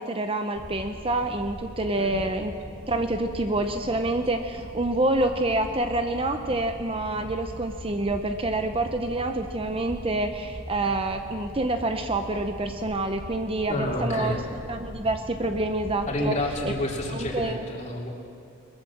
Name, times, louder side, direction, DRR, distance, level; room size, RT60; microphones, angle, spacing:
voice 1, 0.0-2.5 2.9-14.4 14.7-16.4 17.1-17.6, right 2 dB, 25° right, 6 dB, 0.7 m, -27 dB
sound 1, 0.6-17.5, equal, 10° right, 1.8 m, -41 dB
voice 2, 13.7-14.4 16.1-18.1, left 1 dB, 30° left, -1 dB, 3.1 m, -29 dB
22.0 x 21.5 x 7.3 m, 2.6 s
head